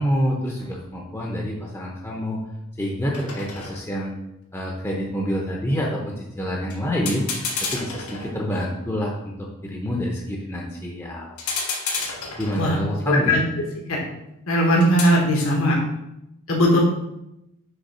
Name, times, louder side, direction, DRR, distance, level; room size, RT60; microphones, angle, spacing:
voice 1, 0.0-2.4 2.8-4.1 4.5-7.3 7.6-11.4 12.4-13.4, equal, 10° left, -2 dB, 0.7 m, -27 dB
sound 1, 0.6-0.8 3.1-4.1 6.7-6.8 7.0-8.8 11.4-12.9 14.8-15.3, left 4 dB, 90° left, 1.3 m, -31 dB
voice 2, 13.0-13.4 13.9-14.0 14.5-15.8 16.5-16.8, equal, 70° left, -1 dB, 1.3 m, -18 dB
6.5 x 3.4 x 5.5 m, 0.86 s
head